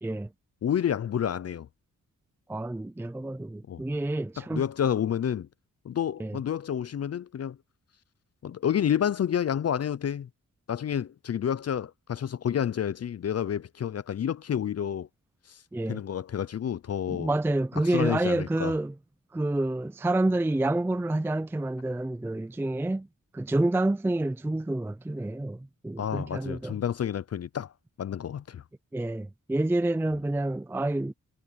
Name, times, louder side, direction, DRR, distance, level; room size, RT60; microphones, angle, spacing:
voice 1, 0.6-1.7 3.7-3.8 4.4-5.5 5.8-7.6 8.4-10.3 10.7-15.1 15.5-15.6 15.9-17.3 17.9-18.7 26.0-27.7 28.0-28.6, left 9 dB, 50° left, 0.5 m, -29 dB
voice 2, 2.5-4.6 6.2-6.4 15.7-16.0 17.1-18.9 19.3-23.1 23.3-26.8 28.9-31.1, right 2 dB, 5° right, 0.4 m, -28 dB
wide cardioid pair, 130°, 33 cm